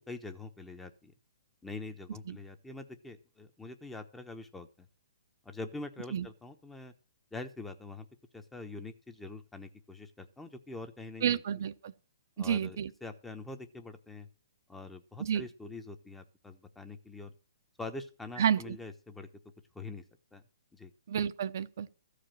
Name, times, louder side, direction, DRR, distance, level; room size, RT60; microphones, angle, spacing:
voice 1, 0.1-1.1 1.6-4.7 5.4-6.9 7.3-8.1 8.3-11.4 12.4-14.3 14.7-17.3 17.8-19.3 19.7-20.0 20.3-20.4 20.7-20.9, left 3 dB, 5° left, 1.0 m, -44 dB
voice 2, 11.2-11.9 12.4-12.9 15.2-15.4 18.4-18.8 21.1-21.9, right 8 dB, 60° right, 0.8 m, -30 dB
14.5 x 5.0 x 7.5 m
hypercardioid pair, 145°, 2 cm